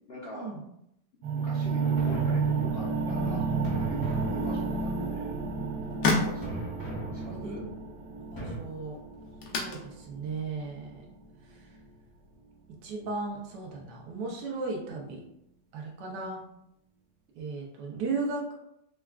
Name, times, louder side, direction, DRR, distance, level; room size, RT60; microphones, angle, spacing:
voice 1, 0.1-0.5 1.3-5.3 6.0-6.4 7.1-7.7, left 1 dB, 55° left, -6 dB, 0.7 m, -43 dB
sound 1, 1.2-11.2, right 4 dB, 60° right, 0.9 m, -31 dB
sound 2, 1.8-3.0 3.6-5.0 6.4-7.8 8.4-8.6, right 2 dB, 20° left, 0.6 m, -39 dB
sound 3, 5.1-12.4, left 3 dB, 75° left, 1.3 m, -36 dB
voice 2, 6.9-7.7 8.3-9.0 9.5-11.1 11.5-11.7 12.8-15.2 15.7-16.4 17.3-18.5, right 3 dB, 80° right, -1 dB, 1.4 m, -36 dB
5.5 x 2.3 x 2.3 m, 0.79 s
omnidirectional pair, 1.9 m